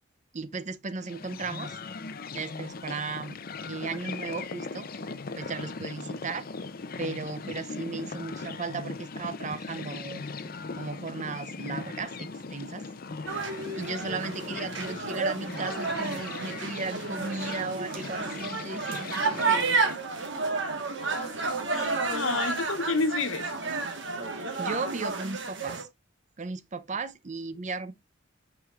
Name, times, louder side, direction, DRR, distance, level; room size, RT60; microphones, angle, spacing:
voice 1, 0.3-1.8 2.3-3.4 3.7-4.9 5.4-6.5 7.0-10.2 10.7-12.8 13.8-20.0 24.2-25.9 26.4-27.9, right 4 dB, 35° right, 0.6 m, -36 dB
sound 1, 1.0-20.0, left 4 dB, 45° left, 0.6 m, -39 dB
sound 2, 13.3-25.8, right 3 dB, 60° right, 1.5 m, -31 dB
voice 2, 21.3-23.5, left 3 dB, 75° left, 1.2 m, -30 dB
8.8 x 4.9 x 2.4 m
head